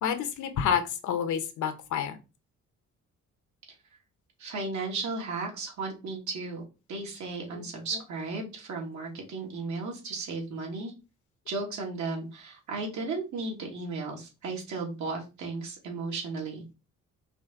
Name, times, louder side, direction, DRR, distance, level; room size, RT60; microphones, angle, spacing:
voice 1, 0.0-2.2, left 8 dB, 75° left, 8 dB, 0.9 m, -29 dB
voice 2, 4.4-6.6 6.9-10.9 11.5-16.6, right 3 dB, 70° right, 0 dB, 1.9 m, -35 dB
4.9 x 2.7 x 3.7 m, 0.29 s
cardioid pair, 90°, 30 cm